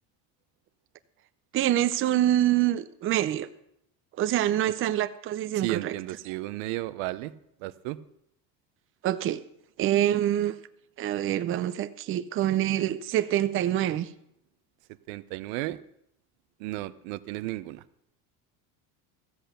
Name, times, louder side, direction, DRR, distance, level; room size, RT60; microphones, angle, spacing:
voice 1, 1.5-3.5 4.2-5.9 9.0-9.4 9.8-10.5 11.0-14.1, right 12 dB, 30° right, 12 dB, 0.6 m, -25 dB
voice 2, 5.5-7.3 7.6-8.0 15.1-15.8 16.6-17.8, right 17 dB, 85° right, 14 dB, 0.8 m, -34 dB
14.5 x 8.0 x 6.7 m, 0.76 s
cardioid pair, 150°, 40 cm